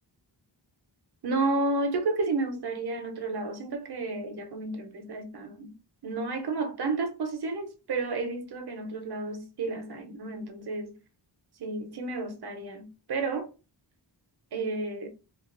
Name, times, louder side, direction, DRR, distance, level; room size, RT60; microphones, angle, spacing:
voice 1, 1.2-5.7 6.0-10.9 11.6-13.5 14.5-15.1, right 3 dB, 60° right, 0.6 m, -31 dB
2.4 x 2.3 x 2.4 m
wide cardioid pair, 75°, 45 cm